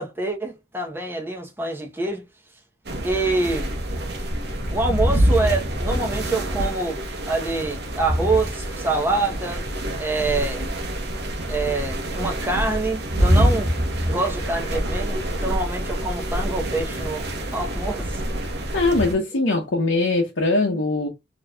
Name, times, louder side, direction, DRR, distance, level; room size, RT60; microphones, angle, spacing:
voice 1, 0.0-2.2 3.0-3.7 4.7-7.0 7.2-9.7 10.0-10.7 11.5-13.7 14.0-17.2 17.5-18.2, right 3 dB, 10° right, 1.0 m, -26 dB
sound 1, 2.9-19.1, equal, 55° right, 1.1 m, -25 dB
voice 2, 18.7-21.1, left 2 dB, 75° left, 1.0 m, -21 dB
4.3 x 3.0 x 2.4 m
head